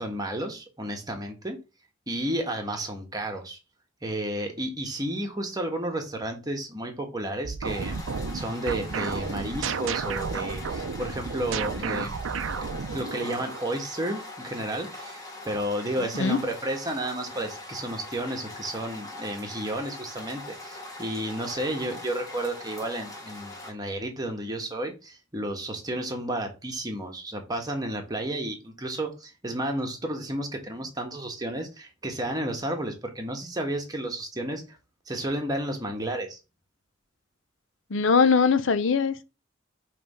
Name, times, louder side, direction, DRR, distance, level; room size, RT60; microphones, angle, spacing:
voice 1, 0.0-1.6 2.1-3.6 4.0-8.0 8.3-12.2 12.5-34.8 35.1-36.4, right 1 dB, 20° right, 1.3 m, -32 dB
sound 1, 7.4-13.6, right 5 dB, 80° right, 0.6 m, -32 dB
sound 2, 7.6-23.7, left 2 dB, 20° left, 1.5 m, -42 dB
voice 2, 37.9-39.2, left 5 dB, 70° left, 0.6 m, -21 dB
5.6 x 3.4 x 5.4 m
head